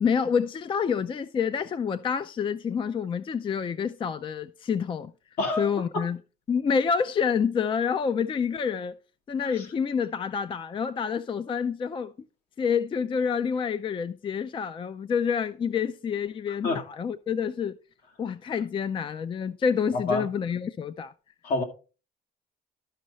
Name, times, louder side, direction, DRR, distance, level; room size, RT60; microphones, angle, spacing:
voice 1, 0.0-5.1 5.6-6.2 6.5-8.9 9.3-12.1 12.6-17.8 18.2-21.1, left 6 dB, 30° left, 0.4 m, -28 dB
voice 2, 5.4-5.7 5.9-6.0 9.4-9.7 16.6-16.8 20.1-20.3 21.4-21.6, left 2 dB, 70° left, 2.4 m, -27 dB
12.5 x 5.4 x 4.0 m
cardioid pair, 110°, 17 cm